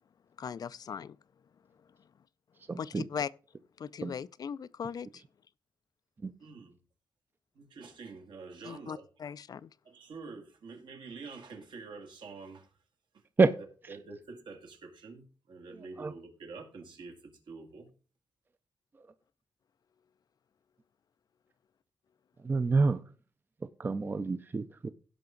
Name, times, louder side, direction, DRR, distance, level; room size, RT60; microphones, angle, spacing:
voice 1, 0.4-1.2 2.8-3.3 3.8-5.2 8.6-9.7, left 7 dB, 50° left, 0.4 m, -39 dB
voice 2, 2.7-3.1 4.0-4.1 6.2-6.3 13.4-13.5 15.7-16.1 22.4-23.0 23.8-24.9, right 4 dB, 25° right, 0.5 m, -28 dB
voice 3, 6.4-6.8 7.5-9.0 9.8-12.7 13.9-17.9, right 4 dB, 75° right, 2.3 m, -47 dB
16.5 x 5.8 x 3.8 m
wide cardioid pair, 170°, 8 cm